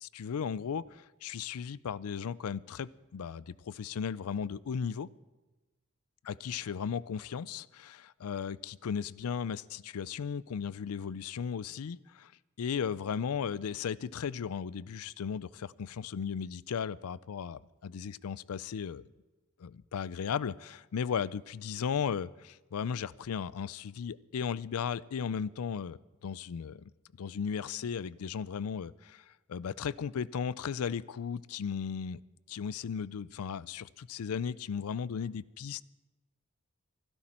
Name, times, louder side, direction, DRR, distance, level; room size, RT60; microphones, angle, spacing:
voice 1, 0.0-5.1 6.3-12.3 12.6-19.0 19.6-26.9 27.2-32.2 32.5-35.8, left 7 dB, 85° left, 21 dB, 0.4 m, -36 dB
25.0 x 11.5 x 4.4 m, 1.1 s
head